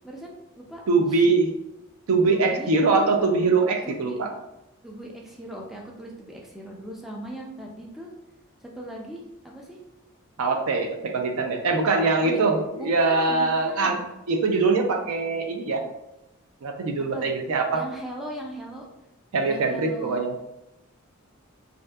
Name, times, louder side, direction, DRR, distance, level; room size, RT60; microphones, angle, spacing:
voice 1, 0.0-0.8 1.1-1.2 2.3-2.7 3.8-4.2 4.8-8.1 8.6-9.8 12.2-12.4 12.8-14.1 17.1-17.3 17.7-18.9 19.4-20.2, equal, ahead, -1 dB, 0.3 m, -39 dB
voice 2, 0.9-1.5 2.1-4.3 10.4-14.0 14.3-15.8 16.6-17.8 19.3-20.3, right 3 dB, 85° right, 3 dB, 0.4 m, -22 dB
2.6 x 2.4 x 2.2 m, 0.90 s
head